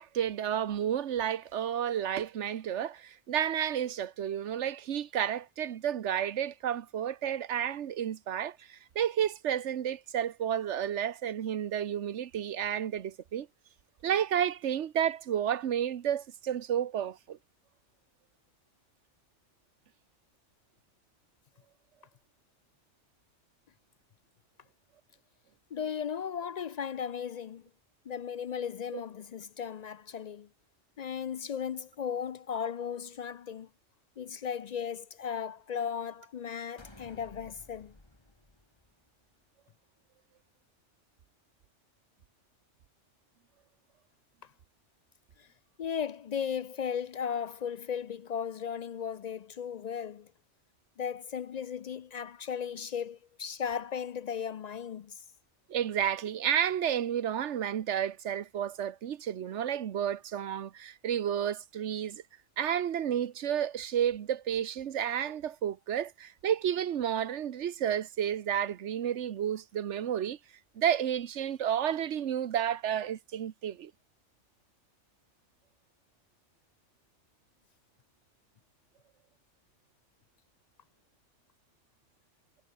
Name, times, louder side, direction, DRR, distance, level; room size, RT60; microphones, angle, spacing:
voice 1, 0.0-13.5 14.0-17.4 28.9-29.0 55.7-62.2 62.6-70.4 70.7-73.9, right 9 dB, 75° right, 1.2 m, -31 dB
voice 2, 25.7-27.6 28.1-30.5 31.0-33.7 34.2-37.9 45.4-45.5 45.8-50.3 51.0-55.2, left 7 dB, 60° left, 0.4 m, -36 dB
sound 1, 36.8-39.3, left 2 dB, 20° left, 2.5 m, -55 dB
omnidirectional pair, 1.2 m